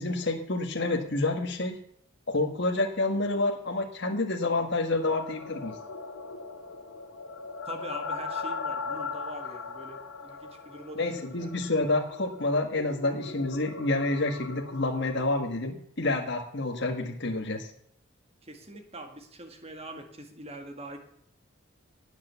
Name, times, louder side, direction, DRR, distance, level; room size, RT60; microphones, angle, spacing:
voice 1, 0.0-1.8 2.3-5.8 11.0-17.7, left 2 dB, 55° left, 2 dB, 1.7 m, -28 dB
sound 1, 5.0-15.4, left 4 dB, 85° left, 2.2 m, -39 dB
voice 2, 7.7-11.6 18.4-21.0, right 1 dB, 30° right, 5 dB, 1.9 m, -43 dB
18.0 x 6.6 x 7.0 m, 0.70 s
head